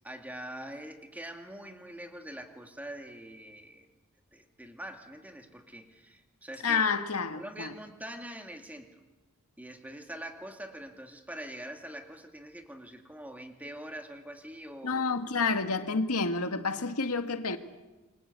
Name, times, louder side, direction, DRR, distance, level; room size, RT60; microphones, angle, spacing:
voice 1, 0.0-3.9 4.3-6.9 7.4-9.0 9.6-15.3, right 1 dB, 5° right, 2.5 m, -44 dB
voice 2, 6.6-7.7 14.8-17.6, left 4 dB, 90° left, 1.8 m, -29 dB
27.5 x 23.0 x 8.1 m
head